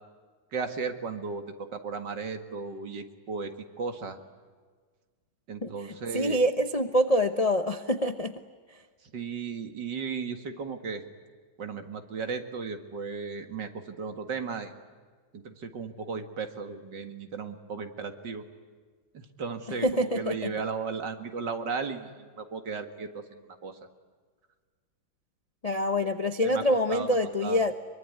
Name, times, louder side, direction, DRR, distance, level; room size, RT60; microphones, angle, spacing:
voice 1, 0.5-3.5 3.8-4.2 5.5-6.4 9.0-11.0 11.6-14.7 15.3-18.4 19.1-23.8 26.4-26.6 26.9-27.6, right 5 dB, 60° right, 7 dB, 2.4 m, -35 dB
voice 2, 6.1-8.3 19.8-20.5 25.6-27.7, equal, 35° left, 7 dB, 0.6 m, -25 dB
23.5 x 23.5 x 9.5 m, 1.5 s
omnidirectional pair, 2.2 m